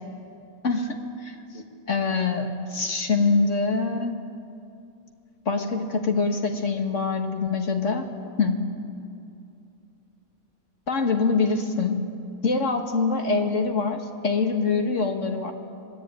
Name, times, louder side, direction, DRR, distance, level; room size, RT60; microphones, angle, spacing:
voice 1, 0.6-1.0 1.2-4.2 5.5-8.1 8.4-8.7 10.9-12.0 12.4-15.5, left 4 dB, 55° left, 4 dB, 2.0 m, -24 dB
26.0 x 19.0 x 9.1 m, 2.6 s
omnidirectional pair, 1.6 m